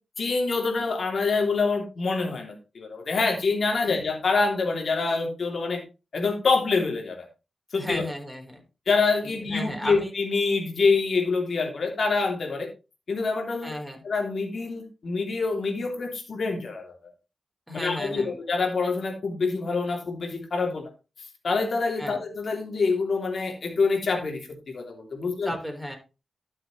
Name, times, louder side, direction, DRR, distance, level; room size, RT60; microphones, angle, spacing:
voice 1, 0.2-5.8 6.1-7.3 7.7-8.0 8.9-12.7 13.1-13.7 14.0-16.9 17.7-20.8 21.4-24.4 24.7-25.5, left 4 dB, 65° left, 3 dB, 2.9 m, -26 dB
voice 2, 7.8-8.6 9.2-10.1 13.6-14.0 17.7-18.4 22.0-22.2 25.4-25.9, left 1 dB, ahead, 2 dB, 4.1 m, -34 dB
12.0 x 6.7 x 3.2 m, 0.30 s
cardioid pair, 50°, 0 cm